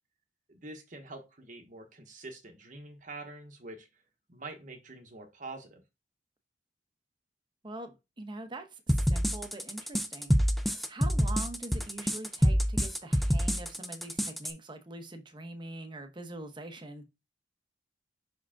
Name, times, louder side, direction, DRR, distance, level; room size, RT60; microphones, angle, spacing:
voice 1, 0.5-3.9 4.3-5.8, right 2 dB, 45° right, 1.1 m, -45 dB
voice 2, 7.6-17.0, right 2 dB, 25° right, 0.9 m, -44 dB
sound 1, 8.9-14.5, equal, ahead, 0.5 m, -27 dB
5.7 x 5.0 x 3.6 m
head